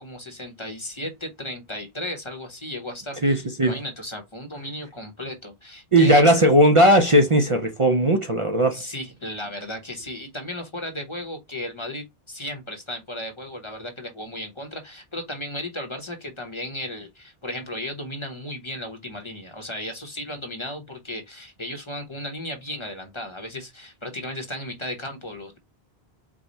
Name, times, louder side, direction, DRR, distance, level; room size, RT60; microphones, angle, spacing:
voice 1, 0.0-6.4 8.7-25.6, left 1 dB, 30° left, 1.0 m, -35 dB
voice 2, 3.2-3.7 5.9-8.8, right 1 dB, 35° right, 0.7 m, -17 dB
4.8 x 2.3 x 4.0 m
omnidirectional pair, 1.0 m